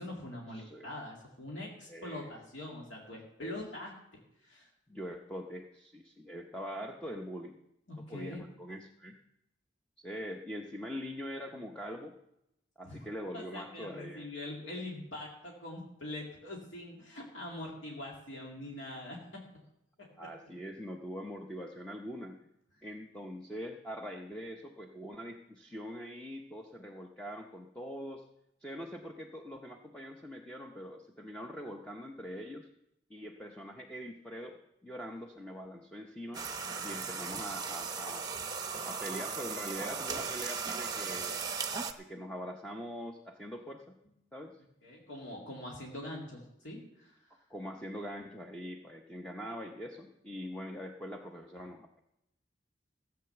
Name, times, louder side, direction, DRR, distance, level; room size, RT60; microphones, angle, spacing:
voice 1, 0.0-3.9 4.4-4.7 7.9-8.4 12.8-19.5 20.0-20.3 44.8-47.2, left 1 dB, 70° left, -2 dB, 2.4 m, -43 dB
voice 2, 0.5-0.9 1.9-2.4 3.4-3.5 4.9-7.6 8.0-9.2 10.0-12.1 12.8-14.3 20.2-22.4 22.8-28.2 28.6-32.7 33.1-36.4 36.8-38.3 38.9-41.5 42.0-44.0 44.3-44.6 47.5-51.9, equal, 5° left, 1 dB, 0.8 m, -43 dB
sound 1, 36.3-41.9, right 5 dB, 20° right, 0.9 m, -37 dB
15.5 x 7.9 x 6.8 m, 0.84 s
head